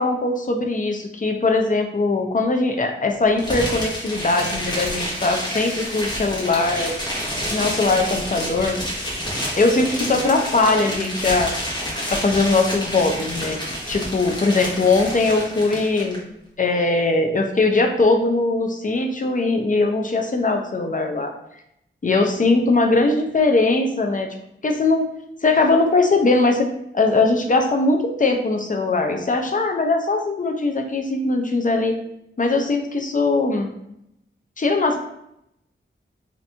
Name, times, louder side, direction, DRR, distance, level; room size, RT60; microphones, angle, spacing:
voice 1, 0.0-6.9 7.4-8.8 9.1-9.3 9.6-11.5 12.1-13.6 13.9-16.2 16.6-21.3 22.0-24.3 24.6-25.1 25.4-26.7 26.9-32.0 32.4-33.7 34.6-35.0, left 3 dB, 40° left, 4 dB, 0.5 m, -20 dB
sound 1, 3.4-16.2, equal, 20° left, 1.0 m, -29 dB
2.8 x 2.6 x 3.3 m, 0.78 s
wide cardioid pair, 70°, 21 cm